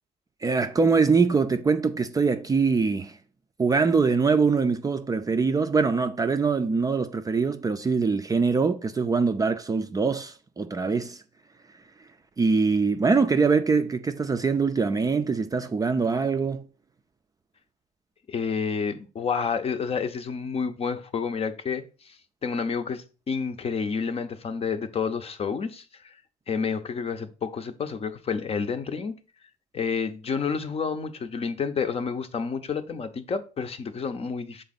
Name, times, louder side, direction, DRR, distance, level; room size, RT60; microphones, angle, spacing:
voice 1, 0.4-3.2 3.6-11.2 12.4-16.7, right 4 dB, 20° right, 0.4 m, -23 dB
voice 2, 18.3-22.2 22.4-26.2 26.5-29.1 29.7-34.6, left 5 dB, 35° left, 0.7 m, -29 dB
6.8 x 3.7 x 4.1 m
cardioid pair, 110°, 17 cm